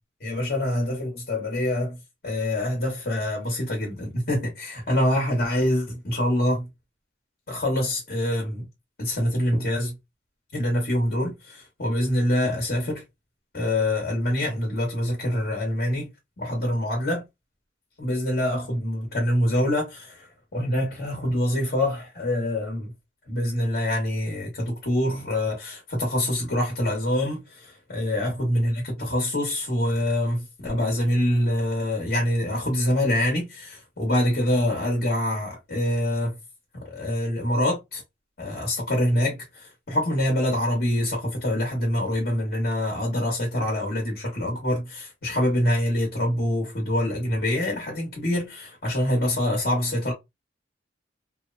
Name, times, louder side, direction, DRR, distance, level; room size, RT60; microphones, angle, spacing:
voice 1, 0.2-2.0 2.2-6.7 7.5-8.7 9.0-9.9 10.5-13.0 13.5-16.1 16.4-17.2 18.0-20.3 20.5-22.9 23.3-36.4 36.8-38.0 38.4-50.1, left 1 dB, 55° left, 1.0 m, -25 dB
2.9 x 2.1 x 2.4 m
head